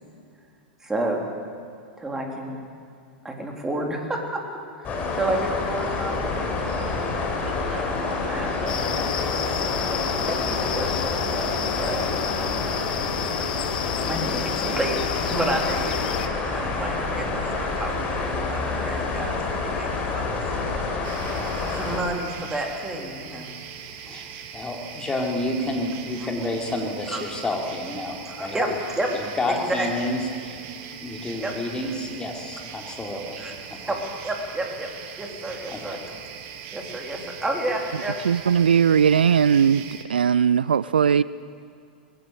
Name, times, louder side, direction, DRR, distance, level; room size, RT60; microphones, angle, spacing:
voice 1, 0.8-1.3 2.0-2.7 3.2-4.4 4.8-6.4 7.4-8.7 9.2-9.6 10.3-12.1 13.8-15.0 15.3-16.2 16.5-20.7 21.8-23.5 27.1-27.2 28.3-29.2 29.5-29.9 31.4-31.5 33.4-33.5 33.9-34.0 34.2-34.9 35.2-36.0 36.7-38.2, right 1 dB, 10° right, 1 dB, 3.7 m, -30 dB
sound 1, 4.8-22.0, left 3 dB, 30° left, 4.4 m, -28 dB
sound 2, 8.7-16.3, left 9 dB, 65° left, 1.2 m, -30 dB
sound 3, 21.0-40.0, right 8 dB, 45° right, 1.9 m, -40 dB
voice 2, 24.0-28.8 29.1-30.6 31.0-33.4 33.7-34.0 35.7-35.8, left 1 dB, 15° left, 0 dB, 3.6 m, -30 dB
voice 3, 38.3-39.8 40.1-41.2, right 7 dB, 75° right, 18 dB, 0.4 m, -18 dB
21.0 x 16.5 x 8.3 m, 2.3 s
figure-of-eight pair, 95°, 5 cm